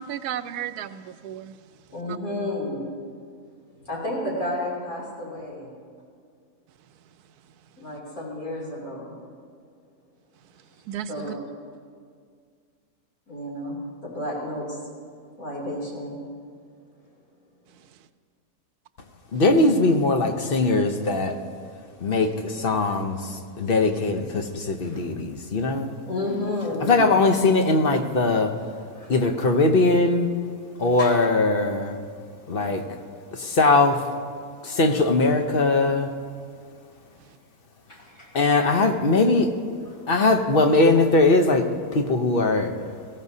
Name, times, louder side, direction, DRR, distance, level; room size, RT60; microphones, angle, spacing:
voice 1, 0.0-1.5 10.9-11.3, right 10 dB, 85° right, 12 dB, 1.1 m, -33 dB
voice 2, 1.9-2.8 3.8-5.7 7.8-9.2 11.1-11.4 13.3-14.9 15.4-16.2 24.8-25.1 26.1-26.9 29.0-29.2 31.0-31.1 33.4-33.5 37.9-38.6 39.8-40.0, left 1 dB, 65° left, -5 dB, 3.4 m, -32 dB
voice 3, 19.3-21.4 22.0-25.9 26.8-28.5 29.1-30.3 30.8-32.0 32.5-32.8 33.3-34.0 34.6-36.1 38.3-39.5 40.1-41.7 41.9-42.7, left 3 dB, 45° left, 5 dB, 0.8 m, -20 dB
20.0 x 15.0 x 2.7 m, 2.1 s
omnidirectional pair, 1.6 m